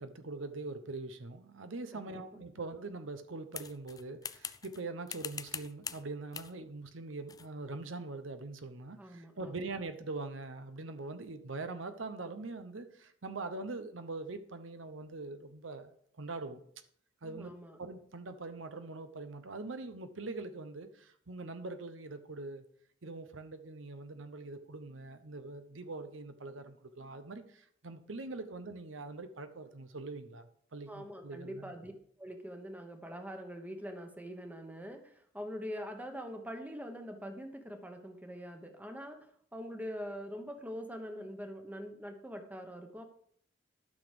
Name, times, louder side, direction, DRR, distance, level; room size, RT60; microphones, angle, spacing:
voice 1, 0.0-15.9 16.2-16.6 17.2-22.6 23.0-31.7, right 3 dB, 75° right, 9 dB, 0.9 m, -43 dB
voice 2, 1.9-2.4 9.0-9.6 17.2-17.8 30.9-31.9 32.2-43.0, equal, 10° right, 5 dB, 1.2 m, -44 dB
sound 1, 3.5-4.8 5.1-6.0 6.3-6.6 7.3-7.5, left 7 dB, 20° left, 0.3 m, -43 dB
12.0 x 6.1 x 5.1 m, 0.63 s
head